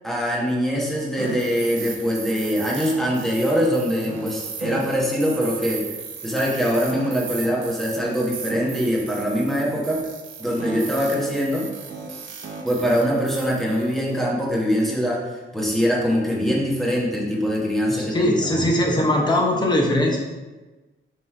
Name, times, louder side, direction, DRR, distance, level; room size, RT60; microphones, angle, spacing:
voice 1, 0.0-5.9 6.2-10.1 10.4-11.7 12.6-18.6, equal, ahead, -4 dB, 1.1 m, -23 dB
sound 1, 1.2-14.2, right 4 dB, 65° right, 0.7 m, -36 dB
voice 2, 17.9-20.2, left 1 dB, 20° left, 0 dB, 0.9 m, -20 dB
5.4 x 3.2 x 5.4 m, 1.2 s
wide cardioid pair, 180°, 21 cm